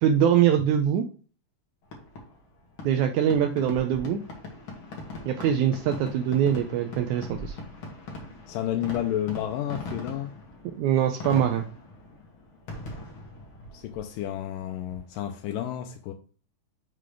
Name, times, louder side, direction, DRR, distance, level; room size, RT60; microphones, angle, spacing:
voice 1, 0.0-1.1 2.8-4.2 5.3-7.6 10.8-11.6, right 9 dB, 80° right, 1.8 m, -23 dB
Fireworks, 1.8-15.4, left 2 dB, 50° left, 1.9 m, -41 dB
voice 2, 8.5-10.3 13.7-16.1, left 11 dB, 85° left, 2.3 m, -31 dB
6.7 x 3.9 x 4.8 m
omnidirectional pair, 3.8 m